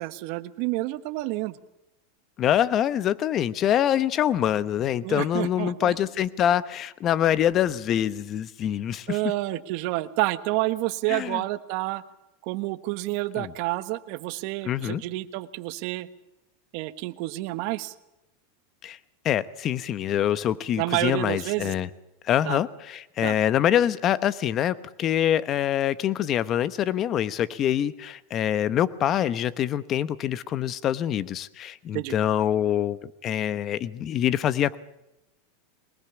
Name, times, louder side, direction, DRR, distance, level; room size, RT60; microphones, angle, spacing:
voice 1, 0.0-1.6 5.0-5.9 9.1-12.0 12.5-16.1 16.7-17.9 20.8-21.7 22.4-22.6 23.2-23.3 31.9-32.1, right 19 dB, 55° right, 12 dB, 1.3 m, -29 dB
voice 2, 2.4-9.2 11.1-11.4 13.3-13.5 14.6-15.0 18.8-19.0 19.2-21.9 22.2-34.8, left 10 dB, 35° left, 16 dB, 1.0 m, -25 dB
22.0 x 20.0 x 7.1 m, 0.92 s
supercardioid pair, 140°, 0 cm